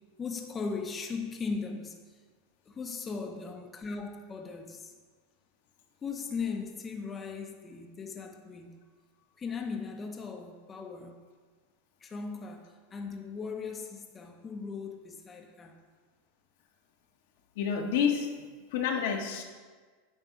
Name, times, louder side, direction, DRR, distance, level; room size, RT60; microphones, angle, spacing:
voice 1, 0.2-2.2 2.7-4.9 6.0-8.8 9.4-11.2 12.0-15.8, left 5 dB, 20° left, 3 dB, 0.7 m, -38 dB
voice 2, 17.6-18.3 18.7-19.4, left 7 dB, 70° left, 3 dB, 1.0 m, -28 dB
9.1 x 3.6 x 5.6 m, 1.5 s
supercardioid pair, 125°, 0 cm